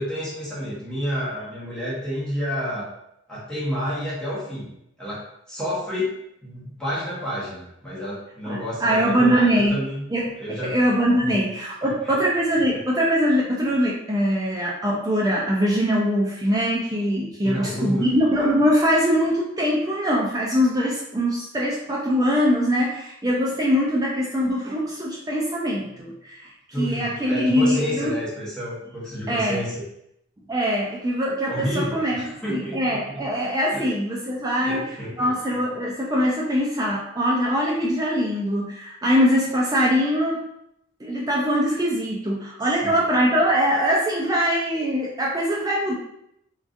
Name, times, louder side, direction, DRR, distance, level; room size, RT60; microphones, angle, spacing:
voice 1, 0.0-2.9 3.3-4.7 5.0-10.0 10.4-10.8 11.2-11.3 11.8-12.2 17.4-18.3 26.7-29.8 31.5-33.2 33.7-33.9 34.6-35.3 42.8-43.0, equal, 5° left, -8 dB, 0.9 m, -30 dB
voice 2, 8.5-9.8 10.1-10.3 10.6-26.5 26.8-28.1 29.3-29.6 30.5-32.2 32.5-34.8 35.2-40.4 41.0-46.0, equal, 15° right, -3 dB, 0.3 m, -22 dB
3.7 x 2.4 x 2.5 m, 0.77 s
head